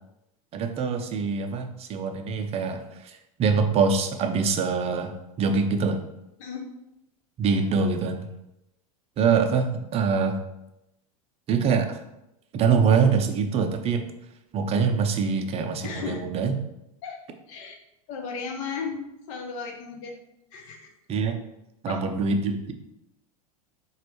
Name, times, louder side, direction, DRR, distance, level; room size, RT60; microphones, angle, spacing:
voice 1, 0.5-6.0 7.4-8.3 9.2-10.4 11.5-12.0 12.5-14.1 14.5-16.6 21.1-21.4 21.8-22.7, right 5 dB, 35° right, 5 dB, 0.5 m, -24 dB
voice 2, 15.8-16.2 17.0-17.2 17.5-17.7 18.1-20.1 20.5-20.9 21.8-22.0, left 5 dB, 60° left, 2 dB, 0.9 m, -35 dB
4.1 x 3.1 x 3.0 m, 0.88 s
hypercardioid pair, 95°, 19 cm